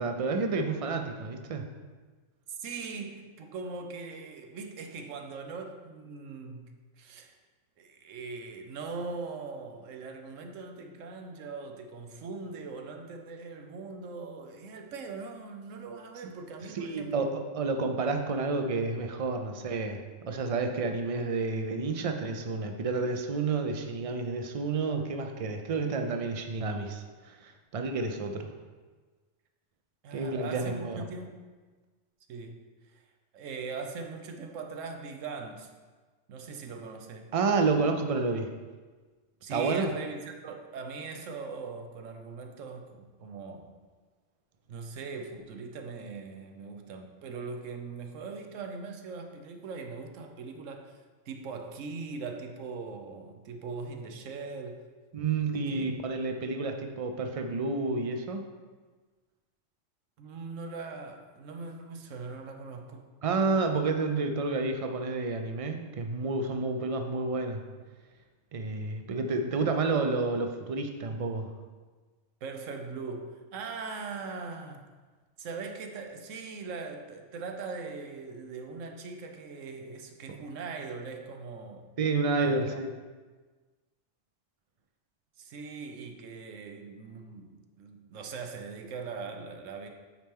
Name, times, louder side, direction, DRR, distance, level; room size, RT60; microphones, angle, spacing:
voice 1, 0.0-1.7 16.7-20.0 20.2-28.5 30.1-31.0 37.3-38.5 39.5-39.9 55.1-58.5 63.2-67.6 68.5-71.5 82.0-82.9, right 3 dB, 50° right, 5 dB, 0.4 m, -30 dB
voice 2, 2.5-7.3 7.8-17.3 30.0-31.4 32.3-32.7 32.9-33.0 33.3-35.7 36.3-37.3 39.4-43.7 44.7-51.0 51.3-54.9 55.7-55.9 60.2-63.1 72.4-74.8 75.4-81.9 82.4-82.8 85.4-89.9, right 4 dB, 90° right, 4 dB, 1.1 m, -41 dB
8.7 x 4.4 x 3.6 m, 1.4 s
omnidirectional pair, 1.3 m